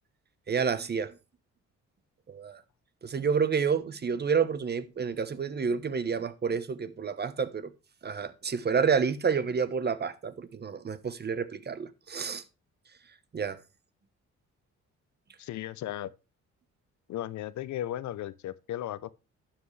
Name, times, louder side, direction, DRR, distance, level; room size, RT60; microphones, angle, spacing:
voice 1, 0.5-1.1 2.3-2.6 3.0-7.7 8.0-12.4 13.3-13.6, right 6 dB, 35° right, 1.0 m, -29 dB
voice 2, 15.4-16.1 17.1-19.1, left 12 dB, 70° left, 0.7 m, -35 dB
11.5 x 7.6 x 3.3 m
cardioid pair, 90°, 30 cm